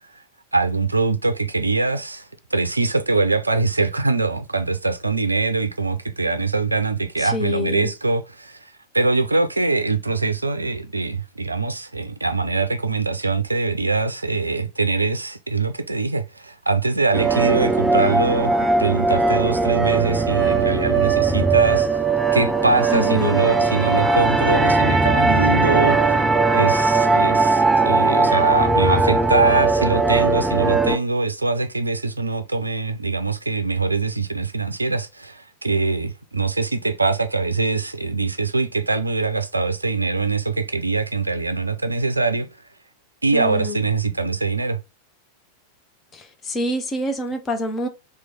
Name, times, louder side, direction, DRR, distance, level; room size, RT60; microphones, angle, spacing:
voice 1, 0.5-22.0 22.3-26.2 26.5-42.5 43.2-44.8, right 3 dB, 80° right, 0.4 m, -23 dB
voice 2, 7.3-7.9 22.9-23.4 43.3-43.8 46.5-47.9, left 1 dB, 20° left, 0.7 m, -25 dB
sound 1, 17.1-31.0, right 3 dB, 10° right, 0.4 m, -19 dB
3.0 x 2.4 x 3.9 m
figure-of-eight pair, 90°, 0 cm